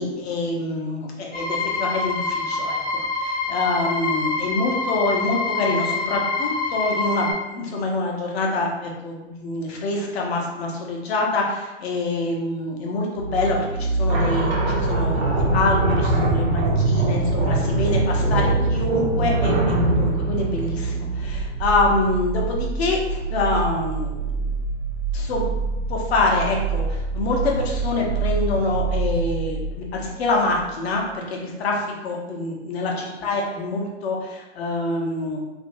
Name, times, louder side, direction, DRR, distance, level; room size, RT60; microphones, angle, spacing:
voice 1, 0.0-19.5 19.9-24.5 25.1-25.4 25.9-35.4, left 2 dB, 55° left, 0 dB, 0.8 m, -26 dB
sound 1, 1.3-7.3, left 3 dB, 20° left, 0.6 m, -26 dB
sound 2, 13.2-30.7 31.0-31.1, right 3 dB, 80° right, 0.8 m, -26 dB
sound 3, 14.1-21.5, right 2 dB, 25° right, 0.5 m, -23 dB
2.8 x 2.6 x 2.6 m, 1.1 s
hypercardioid pair, 130°, 37 cm